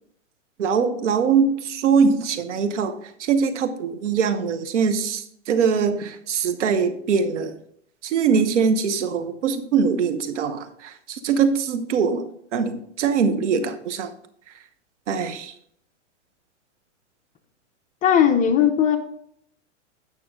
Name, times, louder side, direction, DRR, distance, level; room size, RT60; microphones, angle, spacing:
voice 1, 0.6-7.6 8.0-12.3 12.5-14.1 15.1-15.5, right 6 dB, 70° right, 9 dB, 1.0 m, -22 dB
voice 2, 18.0-19.0, left 8 dB, 20° left, 6 dB, 0.7 m, -17 dB
9.1 x 6.1 x 3.7 m, 0.69 s
hypercardioid pair, 120°, 37 cm